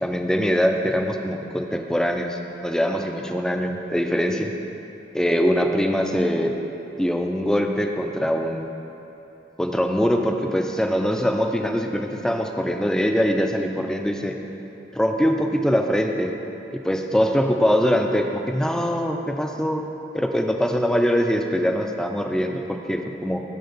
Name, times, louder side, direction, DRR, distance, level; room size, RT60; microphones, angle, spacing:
voice 1, 0.0-4.5 5.1-6.6 7.0-8.7 9.6-14.4 14.9-16.3 16.8-19.9 20.1-23.4, equal, 5° left, 4 dB, 0.4 m, -23 dB
13.0 x 4.4 x 4.0 m, 3.0 s
head